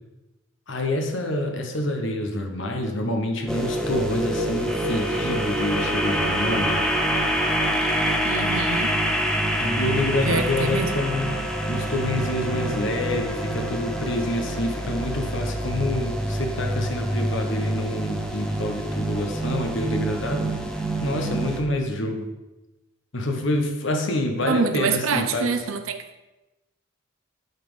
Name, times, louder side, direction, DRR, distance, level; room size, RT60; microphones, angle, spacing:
voice 1, 0.7-6.8 9.6-11.4 11.7-20.5 21.0-22.3 23.1-25.6, left 1 dB, 60° left, 3 dB, 1.1 m, -27 dB
sound 1, 3.5-21.6, right 1 dB, 5° left, 0.8 m, -26 dB
voice 2, 8.2-9.0 10.2-10.9 24.5-26.2, right 4 dB, 85° right, 8 dB, 0.7 m, -26 dB
10.5 x 4.3 x 5.1 m, 1.0 s
head